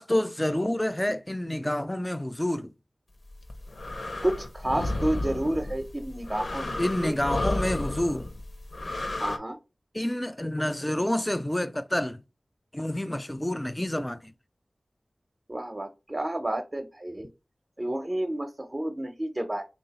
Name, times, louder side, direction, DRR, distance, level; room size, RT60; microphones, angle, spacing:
voice 1, 0.0-2.7 6.8-8.3 9.9-12.2 12.7-14.2, left 1 dB, 15° left, 0.4 m, -28 dB
sound 1, 3.3-9.4, left 2 dB, 75° left, 0.6 m, -32 dB
voice 2, 4.2-7.1 9.2-9.6 15.5-17.3 17.8-19.6, right 1 dB, 35° right, 0.5 m, -30 dB
3.5 x 2.3 x 4.0 m
wide cardioid pair, 50°, 0 cm